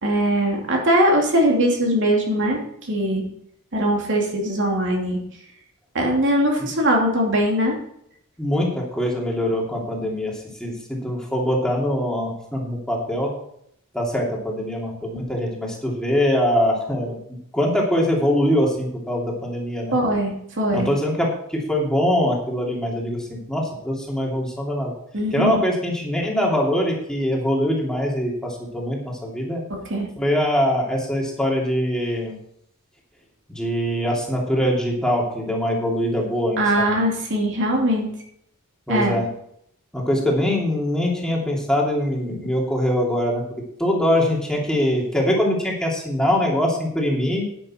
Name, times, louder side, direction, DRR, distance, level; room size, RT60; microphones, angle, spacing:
voice 1, 0.0-3.2 3.7-5.2 5.9-7.8 19.9-20.9 25.1-25.5 29.7-30.1 36.6-38.1 38.9-39.2, equal, 55° right, 0 dB, 2.6 m, -21 dB
voice 2, 8.4-10.3 10.6-13.3 13.9-17.2 17.5-20.0 20.7-24.9 25.3-29.6 30.2-32.4 33.5-37.0 38.9-39.3 39.9-43.4 43.8-47.4, equal, 5° left, -3 dB, 2.8 m, -23 dB
11.0 x 9.9 x 4.4 m, 0.71 s
head